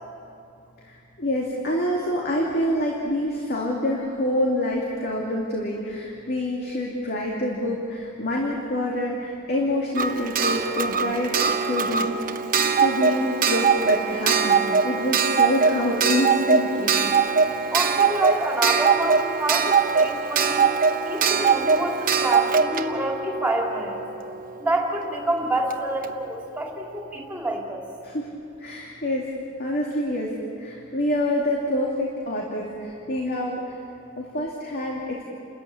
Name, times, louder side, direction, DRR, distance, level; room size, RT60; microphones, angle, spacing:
voice 1, 0.8-11.4 11.6-12.4 12.8-17.0 28.0-28.3 28.6-29.3 29.6-33.8 34.2-35.2, left 1 dB, 50° left, -2 dB, 2.6 m, -27 dB
Clock, 9.9-24.5 25.7-25.8 26.0-26.1, right 5 dB, 40° right, 1.0 m, -22 dB
voice 2, 17.7-20.7 21.0-24.0 24.6-27.8, right 1 dB, 5° right, -1 dB, 3.3 m, -27 dB
30.0 x 14.0 x 8.6 m, 2.6 s
head